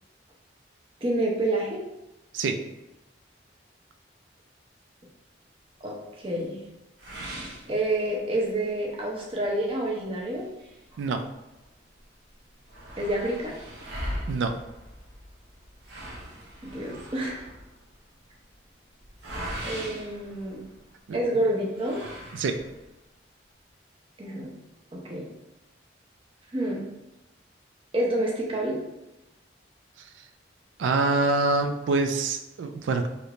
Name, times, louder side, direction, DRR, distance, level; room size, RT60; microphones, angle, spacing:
voice 1, 1.0-1.8 5.8-6.6 7.7-10.5 10.9-11.0 13.0-13.5 16.6-17.5 19.6-20.6 21.1-22.0 24.2-24.5 24.9-25.3 26.5-26.8 27.9-28.8, right 1 dB, 30° right, -2 dB, 0.6 m, -28 dB
sound 1, 7.0-8.5 8.9-9.0 9.4-9.5 10.3-11.7 12.0-12.1 12.3-21.0 21.7-22.9, equal, 65° right, 0.7 m, -40 dB
voice 2, 14.3-14.6 21.1-21.2 22.3-22.6 30.8-33.1, right 3 dB, 90° right, 7 dB, 0.3 m, -25 dB
3.3 x 2.8 x 2.5 m, 0.96 s
head